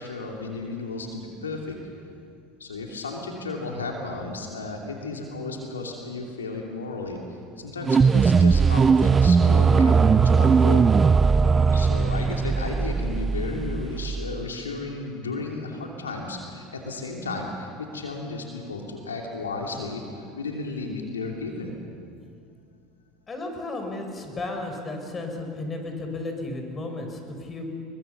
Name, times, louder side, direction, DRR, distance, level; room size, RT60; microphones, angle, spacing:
voice 1, 0.0-1.8 2.6-7.2 7.6-10.9 11.7-21.7, left 3 dB, 90° left, 1 dB, 2.8 m, -33 dB
sound 1, 7.8-14.5, right 5 dB, 25° right, 0.6 m, -19 dB
voice 2, 23.3-27.7, left 2 dB, 25° left, 4 dB, 5.9 m, -33 dB
29.0 x 22.5 x 6.9 m, 2.4 s
hypercardioid pair, 80°, 0 cm